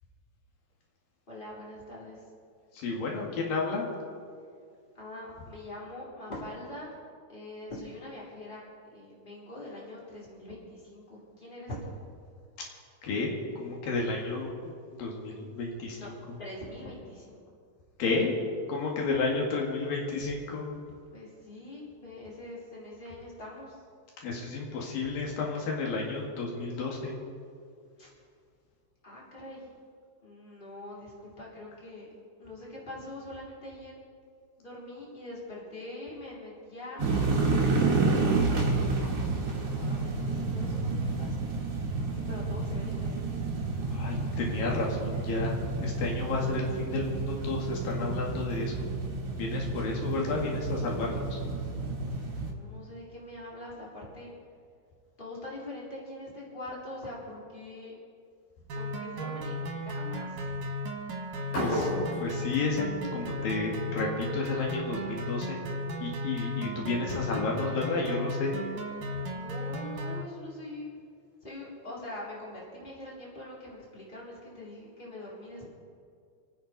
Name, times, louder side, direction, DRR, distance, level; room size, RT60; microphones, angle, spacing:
voice 1, 1.3-2.2 5.0-7.0 7.3-12.0 15.9-16.1 16.4-17.4 21.1-23.7 28.0-28.1 29.0-29.7 30.2-32.1 32.4-34.0 34.6-37.8 38.6-39.1 39.4-41.5 42.1-43.4 52.3-54.3 55.2-57.9 58.8-60.3 69.2-70.9 71.4-75.6, left 1 dB, 15° left, -6 dB, 3.8 m, -43 dB
voice 2, 2.8-3.9 13.0-14.7 15.0-16.1 18.0-18.3 18.7-20.7 24.2-27.1 43.9-48.9 49.4-51.4 61.6-61.9 62.2-62.9 63.1-65.6 66.0-68.5, left 3 dB, 85° left, -1 dB, 3.7 m, -31 dB
sound 1, 37.0-52.5, right 3 dB, 50° right, 2.6 m, -30 dB
sound 2, 58.7-70.2, equal, 65° right, 3.0 m, -35 dB
sound 3, 61.5-63.6, left 1 dB, 65° left, 6.4 m, -34 dB
28.5 x 9.6 x 4.1 m, 2.3 s
omnidirectional pair, 3.9 m